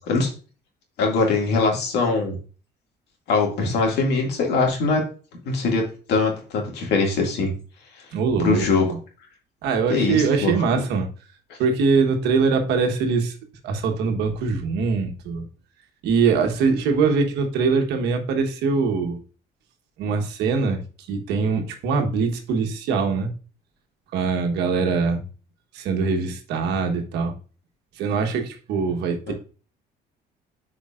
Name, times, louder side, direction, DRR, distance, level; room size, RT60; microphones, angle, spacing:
voice 1, 1.0-2.3 3.3-5.0 5.4-7.5 8.4-8.9 9.9-10.8 29.3-29.4, left 3 dB, 80° left, 1 dB, 2.2 m, -22 dB
voice 2, 8.1-9.0 9.6-11.1 11.6-13.3 13.6-15.4 16.0-19.2 20.0-20.8 21.1-23.3 24.1-25.2 25.7-27.3 28.0-29.3, right 5 dB, 85° right, 4 dB, 1.3 m, -22 dB
8.7 x 4.8 x 2.5 m, 0.37 s
cardioid pair, 110°, 17 cm